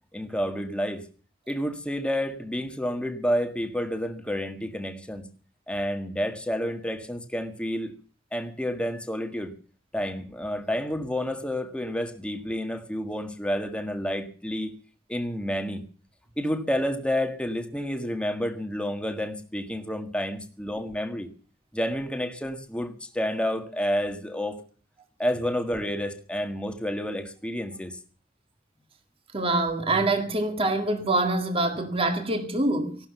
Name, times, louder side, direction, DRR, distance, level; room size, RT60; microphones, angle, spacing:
voice 1, 0.1-1.1 1.5-5.3 5.7-7.9 8.3-9.5 9.9-14.7 15.1-15.8 16.4-21.3 21.7-24.6 25.2-28.0, equal, 5° left, 1.7 m, -29 dB
voice 2, 29.3-33.0, right 2 dB, 30° right, 2.0 m, -25 dB
16.0 x 12.5 x 6.8 m
head